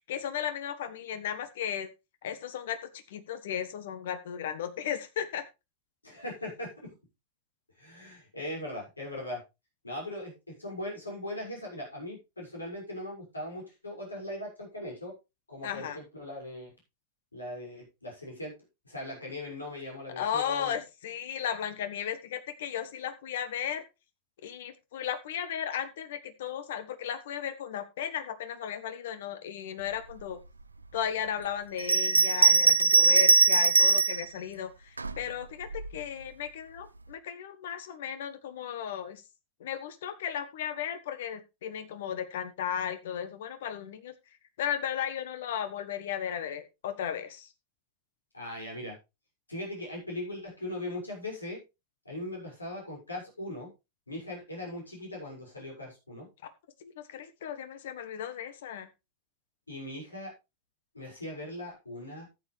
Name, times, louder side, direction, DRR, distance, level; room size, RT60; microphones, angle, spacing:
voice 1, 0.1-1.9 2.2-5.4 15.6-16.0 20.2-23.8 24.4-30.4 30.9-39.2 39.6-44.1 44.6-47.5 56.8-58.9, left 9 dB, 55° left, 11 dB, 1.4 m, -35 dB
voice 2, 6.0-6.9 7.8-9.4 9.8-15.1 15.5-16.7 17.3-18.5 18.8-20.7 48.3-49.0 49.5-51.6 52.0-53.7 54.1-56.3 59.7-60.3 60.9-62.3, left 1 dB, 80° left, -1 dB, 6.2 m, -39 dB
Bell, 31.8-34.2 35.0-35.9, right 4 dB, 80° right, 0.6 m, -21 dB
13.5 x 8.6 x 3.3 m, 0.26 s
figure-of-eight pair, 90°, 0 cm